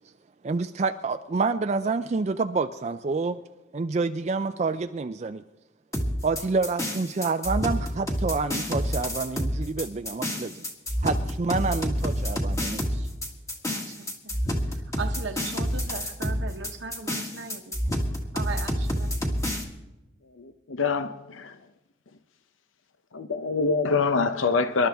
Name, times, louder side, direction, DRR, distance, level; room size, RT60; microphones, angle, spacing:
voice 1, 0.4-3.4 3.7-5.4 6.2-10.6 11.0-13.1, right 4 dB, 35° right, 0.4 m, -28 dB
sound 1, 5.9-19.6, equal, 15° left, 1.8 m, -28 dB
voice 2, 13.7-18.0 18.3-19.5, right 4 dB, 65° right, 1.0 m, -39 dB
voice 3, 20.4-21.6 23.1-24.9, left 4 dB, 80° left, 0.7 m, -25 dB
26.0 x 12.0 x 3.5 m
head